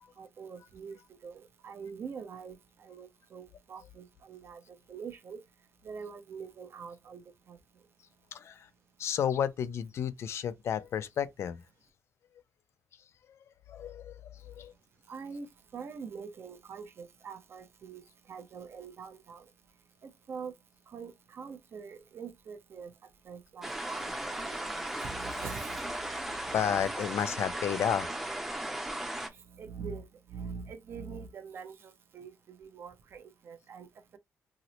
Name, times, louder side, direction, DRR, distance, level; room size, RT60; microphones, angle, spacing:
voice 1, 0.2-5.4 5.8-7.6 15.1-19.5 20.0-20.5 20.9-22.9 23.2-25.8 26.2-26.4 29.5-34.2, right 5 dB, 55° right, 0.6 m, -44 dB
voice 2, 8.3-8.7 9.0-11.6 13.3-13.4 13.7-14.7 26.5-28.1, left 8 dB, 65° left, 0.4 m, -32 dB
sound 1, 23.6-29.3, right 1 dB, 5° right, 0.5 m, -36 dB
2.9 x 2.0 x 3.8 m
wide cardioid pair, 140°, 5 cm